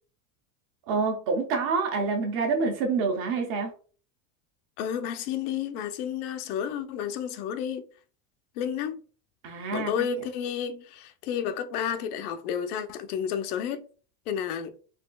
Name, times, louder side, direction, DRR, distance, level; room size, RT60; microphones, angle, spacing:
voice 1, 0.9-3.7 9.4-10.1, right 4 dB, 30° right, 0.5 m, -27 dB
voice 2, 4.8-7.8 8.6-9.0 9.7-13.8 14.3-14.7, left 8 dB, 80° left, 0.7 m, -31 dB
4.2 x 2.8 x 2.3 m
supercardioid pair, 175°, 43 cm